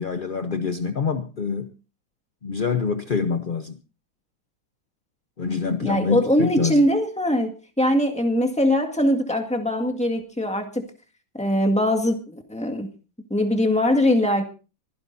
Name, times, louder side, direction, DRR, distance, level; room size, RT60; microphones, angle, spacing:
voice 1, 0.0-1.7 2.4-3.8 5.4-6.8, left 5 dB, 45° left, 8 dB, 0.6 m, -26 dB
voice 2, 5.8-10.8 11.3-12.9 13.3-14.4, left 1 dB, 5° left, 3 dB, 1.7 m, -22 dB
23.5 x 16.0 x 2.7 m, 0.34 s
omnidirectional pair, 2.1 m